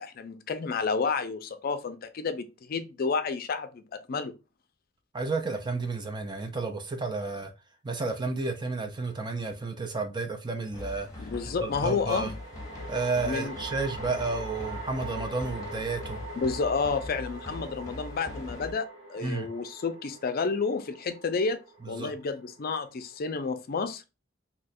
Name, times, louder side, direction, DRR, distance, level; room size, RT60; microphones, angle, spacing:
voice 1, 0.0-4.4 11.2-12.3 13.2-13.6 16.4-21.6 21.9-24.0, left 4 dB, 50° left, 0.4 m, -30 dB
voice 2, 5.1-7.5 7.8-11.3 11.6-12.3 12.9-16.2 19.2-19.5 21.8-22.1, right 3 dB, 25° right, 0.5 m, -31 dB
sound 1, 9.1-9.2 12.0-23.4, right 2 dB, 70° right, 1.6 m, -44 dB
sound 2, 10.7-18.7, left 2 dB, 20° left, 1.0 m, -41 dB
2.8 x 2.3 x 4.1 m
head